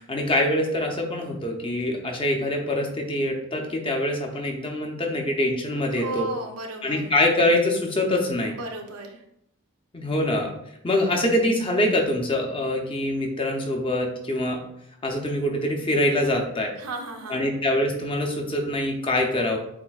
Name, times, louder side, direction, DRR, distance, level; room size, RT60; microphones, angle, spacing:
voice 1, 0.0-6.3 6.8-8.5 9.9-10.5 10.8-14.6 15.0-16.7 17.3-19.6, left 1 dB, 25° left, 1 dB, 0.6 m, -24 dB
voice 2, 6.0-7.1 8.6-9.2 16.8-17.4, right 3 dB, 85° right, 3 dB, 0.8 m, -34 dB
7.2 x 2.6 x 2.3 m, 0.75 s
head